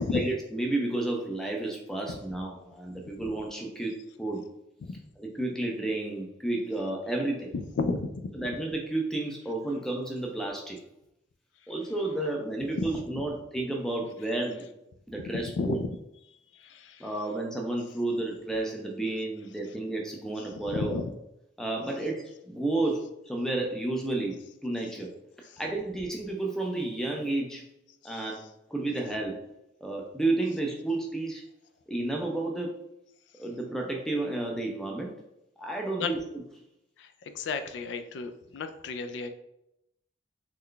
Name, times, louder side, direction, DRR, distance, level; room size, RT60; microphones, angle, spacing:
voice 1, 0.1-4.4 5.2-7.5 8.4-10.8 11.7-14.7 15.1-15.8 17.0-21.0 21.6-25.1 25.6-27.6 28.0-29.4 29.8-31.4 31.9-32.7 33.4-35.1 35.6-36.2, right 2 dB, 5° left, 0 dB, 0.4 m, -31 dB
voice 2, 7.8-8.4 15.2-15.9 16.3-17.1 20.7-21.1 25.4-25.6 28.0-28.4 36.0-36.1 37.0-39.3, left 4 dB, 80° left, 8 dB, 0.3 m, -33 dB
3.2 x 2.2 x 3.8 m, 0.83 s
head